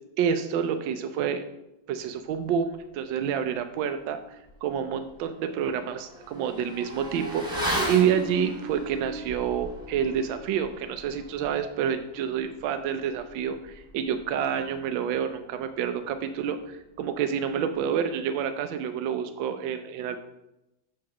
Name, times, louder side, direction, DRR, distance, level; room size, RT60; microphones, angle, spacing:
voice 1, 0.2-1.4 1.9-4.2 4.6-20.2, right 8 dB, 80° right, 8 dB, 1.3 m, -28 dB
Motorcycle / Accelerating revving vroom, 4.5-4.6 5.0-15.0 15.2-15.4, right 1 dB, 5° right, 1.1 m, -36 dB
6.2 x 4.7 x 6.0 m, 0.91 s
omnidirectional pair, 2.1 m